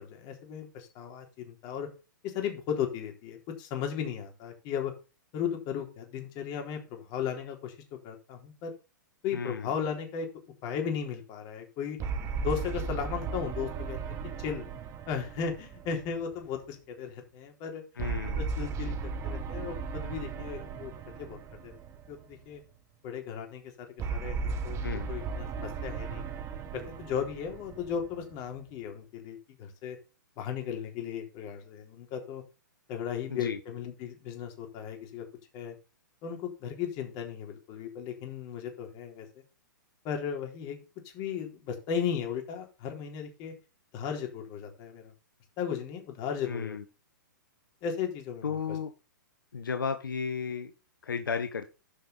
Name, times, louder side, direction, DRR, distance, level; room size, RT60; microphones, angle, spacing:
voice 1, 0.0-1.9 2.2-4.9 5.3-7.8 8.0-8.7 9.2-10.3 10.6-12.0 12.4-14.6 15.1-17.8 18.4-20.9 21.2-21.8 22.1-22.6 23.0-26.2 26.7-30.0 30.4-32.4 32.9-35.3 35.5-35.7 36.2-39.3 40.0-40.8 41.0-43.5 43.9-45.1 45.6-46.8 47.8-48.8, left 7 dB, 40° left, 3 dB, 3.8 m, -36 dB
voice 2, 9.3-9.7 18.0-18.4 24.8-25.1 33.3-33.6 46.5-46.8 48.4-48.9 49.5-50.7 51.0-51.7, left 6 dB, 80° left, 8 dB, 1.2 m, -33 dB
sound 1, 12.0-16.6 18.0-22.4 24.0-28.6, right 5 dB, 25° right, 1.6 m, -36 dB
13.0 x 5.7 x 4.1 m, 0.31 s
hypercardioid pair, 125°, 11 cm